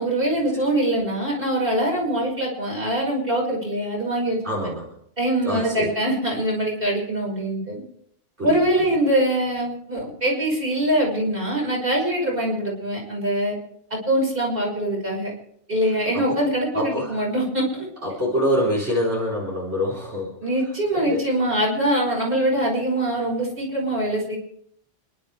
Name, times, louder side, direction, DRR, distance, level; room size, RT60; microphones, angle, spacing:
voice 1, 0.0-4.4 5.2-7.8 8.4-13.6 13.9-15.3 15.7-17.9 20.4-24.4, right 1 dB, 45° right, -3 dB, 6.0 m, -23 dB
voice 2, 4.4-4.9 5.4-5.9 8.4-8.9 16.1-16.4 16.7-17.2 18.0-20.4 20.9-21.2, equal, 65° right, -5 dB, 4.6 m, -26 dB
29.5 x 11.5 x 3.5 m, 0.70 s
omnidirectional pair, 1.2 m